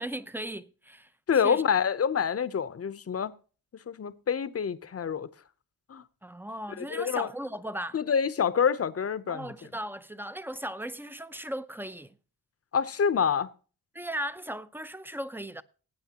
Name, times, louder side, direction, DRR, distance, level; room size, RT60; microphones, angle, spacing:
voice 1, 0.0-1.1 1.4-1.6 6.2-8.0 9.3-12.2 13.9-15.6, right 1 dB, 5° right, 0.6 m, -37 dB
voice 2, 1.3-3.3 3.7-5.3 5.9-6.0 6.8-7.3 7.9-9.5 12.7-13.5, left 7 dB, 40° left, 0.8 m, -27 dB
18.5 x 9.0 x 2.9 m
wide cardioid pair, 110°, 37 cm